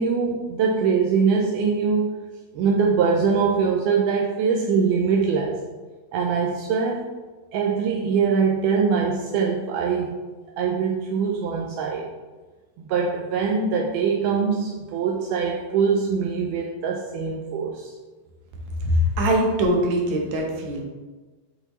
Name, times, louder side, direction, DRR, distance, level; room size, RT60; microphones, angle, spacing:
voice 1, 0.0-2.2 2.5-5.6 6.1-7.1 7.5-10.2 10.6-12.1 12.9-17.9, right 5 dB, 85° right, -1 dB, 1.8 m, -23 dB
voice 2, 18.8-20.8, equal, 70° right, 0 dB, 1.9 m, -22 dB
7.9 x 4.2 x 3.0 m, 1.3 s
omnidirectional pair, 4.3 m